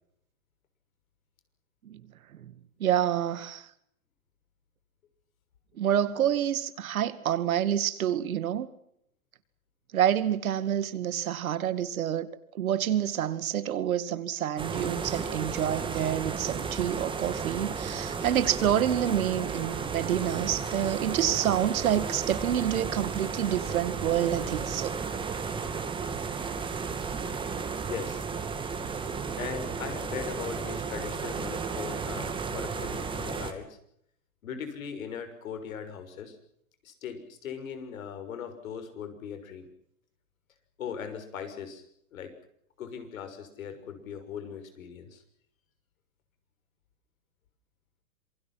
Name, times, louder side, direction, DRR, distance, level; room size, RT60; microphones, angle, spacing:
voice 1, 2.8-3.7 5.8-8.7 9.9-12.3 12.5-25.0 29.3-29.4, right 10 dB, 75° right, 2.3 m, -28 dB
sound 1, 14.6-33.5, right 5 dB, 10° right, 2.6 m, -34 dB
voice 2, 27.9-28.2 29.4-33.8 34.4-36.4 36.8-39.7 40.8-41.8 42.1-42.3 42.8-45.2, left 7 dB, 70° left, 6.5 m, -39 dB
27.0 x 23.0 x 5.9 m
hypercardioid pair, 135°, 42 cm